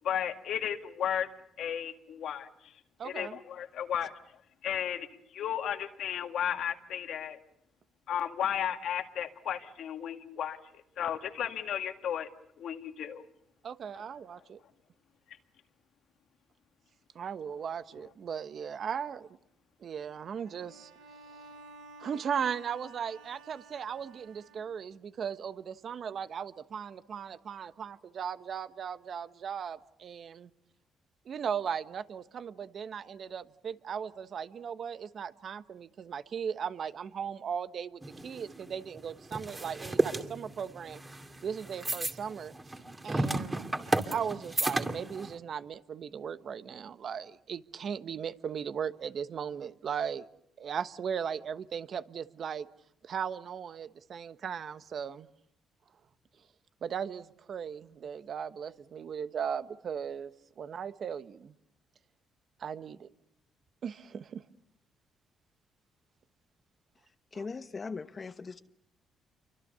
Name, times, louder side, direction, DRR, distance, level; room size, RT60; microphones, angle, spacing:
voice 1, 0.0-1.3 1.6-2.7 3.0-4.1 4.6-5.1 5.3-7.4 8.1-12.3 12.6-13.2 13.9-14.0, left 9 dB, 75° left, 7 dB, 2.0 m, -34 dB
voice 2, 3.0-3.4 13.6-14.6 17.1-19.3 19.8-20.9 22.0-30.5 31.2-41.0 41.4-42.5 43.0-50.3 50.6-52.7 53.0-55.3 56.8-60.3 60.6-61.5 62.6-63.1 63.8-64.4 67.3-67.4, right 7 dB, 55° right, 12 dB, 1.1 m, -37 dB
Bowed string instrument, 20.4-25.0, right 3 dB, 90° right, 3.1 m, -53 dB
sound 1, 38.0-45.3, right 2 dB, 20° right, 2.5 m, -33 dB
voice 3, 67.3-68.6, left 4 dB, 35° left, 9 dB, 1.1 m, -39 dB
28.5 x 24.5 x 6.9 m, 0.79 s
cardioid pair, 90°, 0 cm